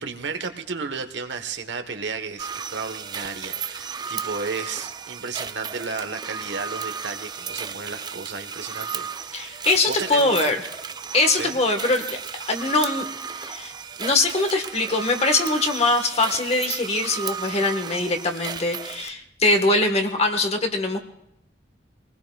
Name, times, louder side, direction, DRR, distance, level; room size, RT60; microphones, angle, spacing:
voice 1, 0.0-10.5 11.3-11.6, right 4 dB, 80° right, 7 dB, 1.2 m, -33 dB
sound 1, 2.4-19.1, right 6 dB, 25° right, 0.5 m, -34 dB
voice 2, 9.3-10.6 11.1-13.1 13.4-13.7 14.0-21.0, left 2 dB, 35° left, 6 dB, 1.3 m, -22 dB
24.5 x 19.5 x 2.3 m, 0.79 s
head